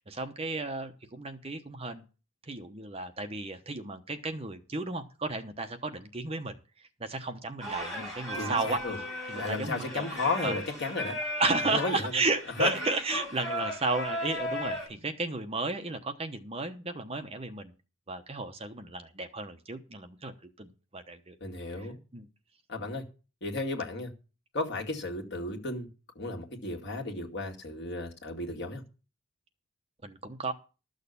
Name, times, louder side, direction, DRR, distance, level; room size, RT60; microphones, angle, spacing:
voice 1, 0.0-2.0 2.5-6.5 7.0-8.8 9.3-10.0 10.4-10.6 11.4-17.7 18.1-20.3 20.6-21.4 21.8-21.9 22.1-22.3 30.0-30.5, right 3 dB, 25° right, 0.9 m, -33 dB
Singing, 7.6-14.9, equal, ahead, 7.0 m, -36 dB
voice 2, 8.3-9.0 9.3-11.1 11.6-12.1 12.6-12.7 21.4-22.0 22.7-23.0 23.4-24.1 24.5-25.9 26.2-28.8, left 3 dB, 50° left, 2.2 m, -33 dB
13.0 x 6.6 x 6.9 m
head